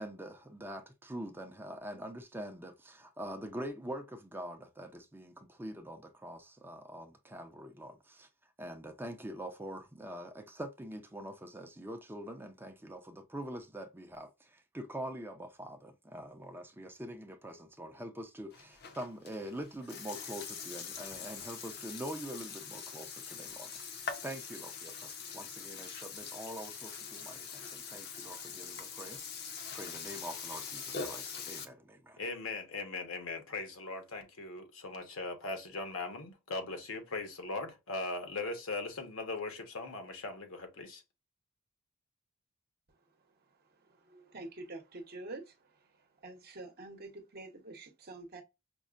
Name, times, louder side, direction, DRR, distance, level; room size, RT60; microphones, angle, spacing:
voice 1, 0.0-8.3 8.6-29.2 29.5-32.2, right 1 dB, 10° right, 0.5 m, -44 dB
Burping eructation, 18.5-31.6, left 6 dB, 50° left, 0.7 m, -43 dB
voice 2, 32.2-41.0, left 3 dB, 70° left, 1.0 m, -39 dB
voice 3, 44.0-45.5 46.2-48.4, right 2 dB, 45° right, 0.8 m, -46 dB
5.2 x 2.1 x 2.4 m
head